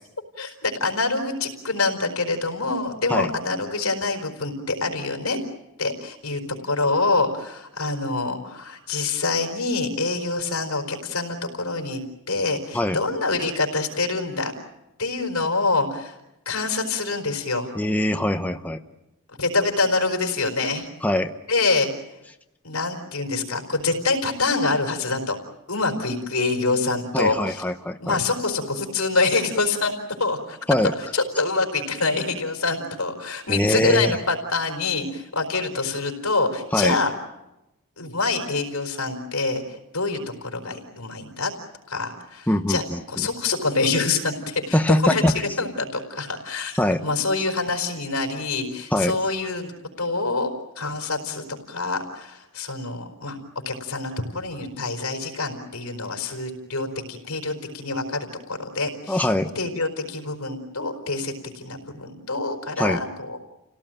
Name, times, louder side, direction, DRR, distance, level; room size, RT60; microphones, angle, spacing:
voice 1, 0.4-5.4 5.8-12.0 12.3-14.5 15.0-16.1 16.5-17.7 19.4-20.9 21.5-21.9 22.6-25.4 25.7-27.6 28.0-29.9 30.2-30.6 31.1-37.1 38.0-39.6 39.9-41.5 41.9-42.8 43.1-49.7 50.0-50.5 50.8-53.4 53.7-59.3 59.5-63.4, left 3 dB, 85° left, 3 dB, 4.4 m, -26 dB
voice 2, 17.7-18.8 21.0-21.3 27.1-28.2 30.7-30.9 33.5-34.2 36.7-37.0 42.5-43.0 44.7-45.3 46.8-47.0 48.9-49.2 59.1-59.5 62.8-63.0, left 1 dB, 5° left, 6 dB, 0.8 m, -22 dB
29.0 x 17.5 x 9.0 m, 0.96 s
head